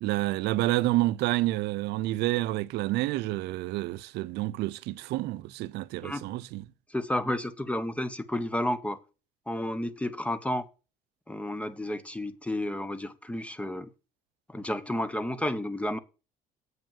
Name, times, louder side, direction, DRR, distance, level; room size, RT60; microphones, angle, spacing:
voice 1, 0.0-6.6, right 17 dB, 80° right, 0.5 m, -29 dB
voice 2, 6.9-9.0 9.5-10.7 11.3-13.9 14.5-16.0, left 1 dB, 5° left, 0.8 m, -31 dB
8.0 x 5.2 x 7.4 m
cardioid pair, 110°, 17 cm